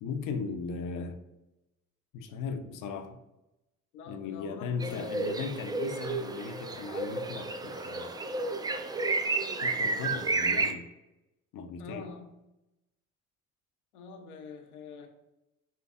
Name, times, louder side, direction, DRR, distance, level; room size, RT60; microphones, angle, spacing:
voice 1, 0.0-1.2 2.1-3.2 4.1-8.1 9.6-10.9 11.5-12.1, left 5 dB, 50° left, 7 dB, 0.6 m, -37 dB
voice 2, 3.9-5.2 10.0-10.2 11.8-12.3 13.9-15.1, left 4 dB, 85° left, 2 dB, 0.8 m, -46 dB
sound 1, 4.8-10.7, right 3 dB, 10° right, 0.3 m, -31 dB
5.6 x 3.3 x 2.4 m, 0.95 s
hypercardioid pair, 55°, 44 cm